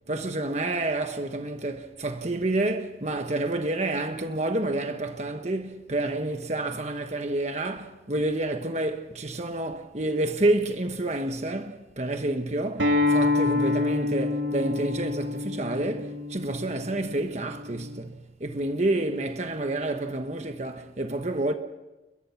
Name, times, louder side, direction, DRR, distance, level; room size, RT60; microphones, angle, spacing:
voice 1, 0.1-21.5, right 2 dB, 35° right, 1.3 m, -29 dB
Acoustic guitar, 12.8-18.0, left 3 dB, 80° right, 3.2 m, -27 dB
29.0 x 22.5 x 5.9 m
head